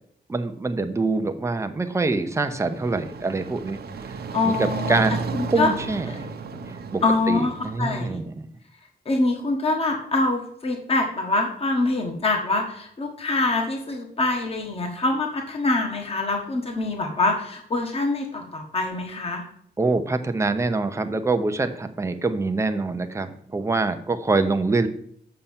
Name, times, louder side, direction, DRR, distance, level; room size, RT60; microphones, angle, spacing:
voice 1, 0.3-3.8 4.5-5.2 5.5-6.1 6.7-8.4 19.8-24.9, right 3 dB, 15° right, 8 dB, 0.7 m, -25 dB
sound 1, 2.1-8.1, right 4 dB, 65° right, 0.9 m, -34 dB
voice 2, 4.3-5.0 5.3-5.7 6.1-6.2 7.0-8.2 9.0-19.4, left 2 dB, 35° left, 2 dB, 1.4 m, -24 dB
6.5 x 5.7 x 7.3 m, 0.66 s
wide cardioid pair, 165°, 17 cm